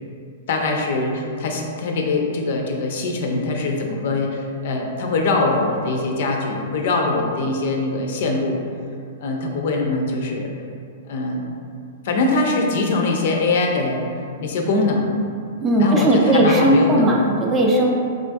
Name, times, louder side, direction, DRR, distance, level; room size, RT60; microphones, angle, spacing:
voice 1, 0.5-8.6 9.2-10.5 11.0-11.4 12.0-14.1 14.4-15.2 15.8-17.1, left 3 dB, 60° left, 1 dB, 0.4 m, -22 dB
voice 2, 15.6-17.9, right 1 dB, 20° right, -1 dB, 0.4 m, -17 dB
3.7 x 2.4 x 2.5 m, 2.4 s
hypercardioid pair, 145°, 0 cm